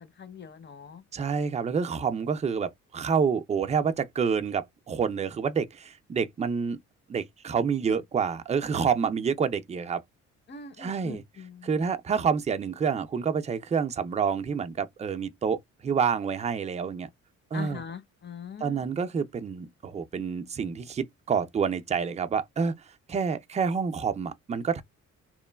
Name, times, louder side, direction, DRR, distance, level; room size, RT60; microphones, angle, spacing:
voice 1, 0.0-1.0 10.5-11.7 17.5-18.9, left 6 dB, 35° left, 0.6 m, -42 dB
voice 2, 1.1-6.8 7.1-10.0 10.8-11.2 11.6-17.1 17.5-17.8 18.6-22.7 23.1-24.8, right 6 dB, 25° right, 0.4 m, -28 dB
3.0 x 2.1 x 2.2 m
cardioid pair, 90°, 30 cm